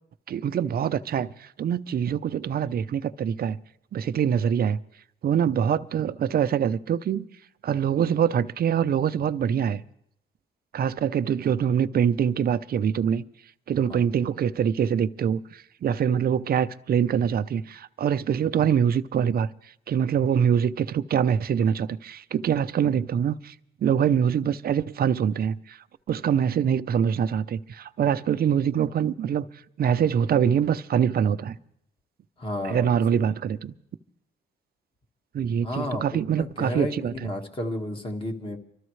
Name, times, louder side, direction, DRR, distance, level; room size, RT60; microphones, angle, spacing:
voice 1, 0.3-3.6 3.9-4.8 5.2-7.2 7.6-9.8 10.7-13.2 13.7-19.5 19.9-23.5 23.8-25.8 26.1-29.4 29.8-31.6 32.6-33.7 35.3-37.3, right 8 dB, 50° right, 0.6 m, -24 dB
voice 2, 32.4-33.3 35.6-38.6, left 1 dB, 25° left, 1.8 m, -32 dB
25.0 x 13.5 x 3.2 m
cardioid pair, 90°, 20 cm